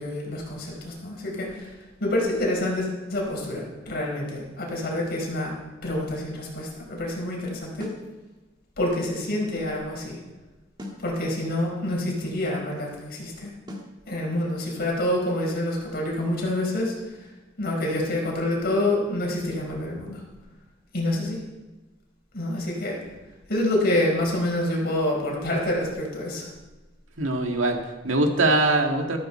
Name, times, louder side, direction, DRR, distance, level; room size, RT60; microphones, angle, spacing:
voice 1, 0.0-5.5 5.8-7.9 8.8-10.2 11.0-13.5 14.1-17.3 17.6-20.2 20.9-21.4 22.3-23.0 23.5-26.5, left 1 dB, 55° left, -2 dB, 4.7 m, -27 dB
sound 1, 7.8-8.1 10.8-11.1 13.7-14.0, left 1 dB, 25° right, 1.9 m, -38 dB
voice 2, 27.2-29.2, right 2 dB, 90° right, 3 dB, 2.0 m, -22 dB
14.0 x 13.5 x 4.4 m, 1.2 s
head